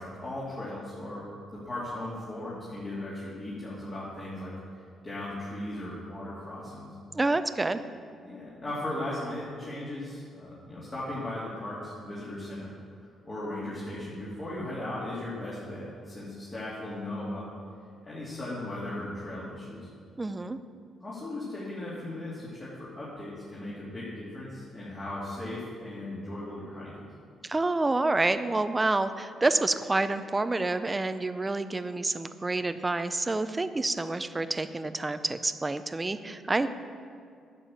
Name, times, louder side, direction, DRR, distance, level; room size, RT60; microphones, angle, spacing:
voice 1, 0.0-4.5 5.0-6.9 8.2-12.7 13.2-17.5 18.0-19.9 21.0-27.0, left 1 dB, 30° left, -8 dB, 2.9 m, -37 dB
voice 2, 7.1-7.8 20.2-20.6 27.4-36.7, right 2 dB, 20° right, 12 dB, 0.5 m, -28 dB
10.5 x 6.8 x 7.3 m, 2.3 s
cardioid pair, 90°, 0 cm